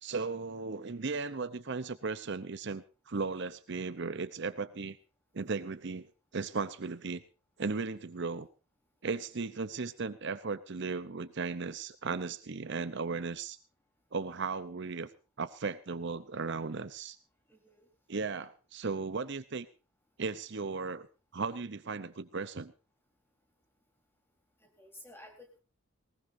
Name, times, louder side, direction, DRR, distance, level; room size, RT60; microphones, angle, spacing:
voice 1, 0.0-5.0 5.3-6.1 6.3-7.2 7.6-8.5 9.0-13.6 14.1-15.1 15.4-17.2 18.1-19.7 20.2-21.1 21.3-22.7, right 4 dB, 55° right, 13 dB, 0.7 m, -36 dB
voice 2, 9.0-9.4 17.5-17.9 24.6-25.6, left 1 dB, 10° left, 3 dB, 3.8 m, -54 dB
19.5 x 19.0 x 2.7 m, 0.32 s
head